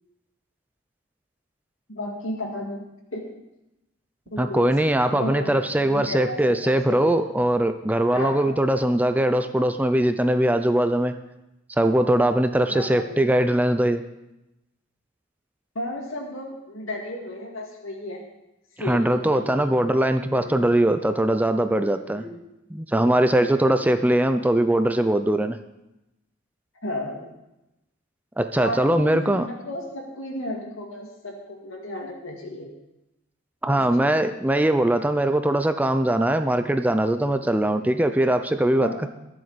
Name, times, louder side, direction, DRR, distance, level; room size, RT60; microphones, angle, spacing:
voice 1, 1.9-2.8 3.1-3.2 4.3-4.8 5.1-7.3 8.1-8.6 12.7-13.2 15.8-18.2 18.8-19.7 20.3-21.0 22.1-22.4 26.8-27.3 28.6-32.7 33.7-34.1 38.8-39.0, left 1 dB, 80° left, 0 dB, 2.1 m, -34 dB
voice 2, 4.4-11.1 11.8-14.0 18.9-22.2 22.7-25.6 28.4-29.5 33.6-39.1, right 1 dB, 10° right, 9 dB, 0.5 m, -21 dB
21.5 x 7.7 x 4.1 m, 0.92 s
head